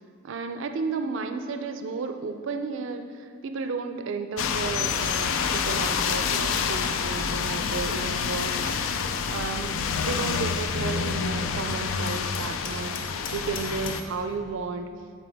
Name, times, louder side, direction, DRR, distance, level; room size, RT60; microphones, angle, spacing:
voice 1, 0.2-12.9 13.3-14.9, right 4 dB, 70° right, 7 dB, 0.4 m, -33 dB
sound 1, 4.4-14.0, left 6 dB, 80° left, 0.4 m, -28 dB
Hammer, 12.1-14.1, left 3 dB, 45° left, 0.8 m, -41 dB
11.0 x 4.4 x 3.4 m, 2.2 s
head